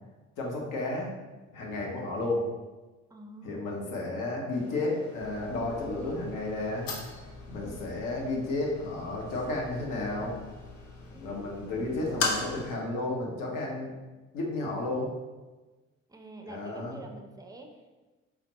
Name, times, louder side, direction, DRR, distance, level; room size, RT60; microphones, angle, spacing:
voice 1, 0.4-1.1 1.5-2.4 3.4-6.9 7.5-10.3 11.2-13.9 14.3-15.1 16.5-17.0, left 2 dB, 55° left, -1 dB, 1.0 m, -32 dB
voice 2, 3.1-3.8 5.9-6.4 7.6-8.0 11.1-12.2 16.1-17.9, right 1 dB, 10° right, 2 dB, 0.6 m, -48 dB
sound 1, 4.5-12.8, left 3 dB, 85° left, 0.6 m, -39 dB
sound 2, 5.2-12.8, left 3 dB, 35° left, 0.5 m, -49 dB
4.2 x 2.2 x 4.0 m, 1.2 s
figure-of-eight pair, 50°, 37 cm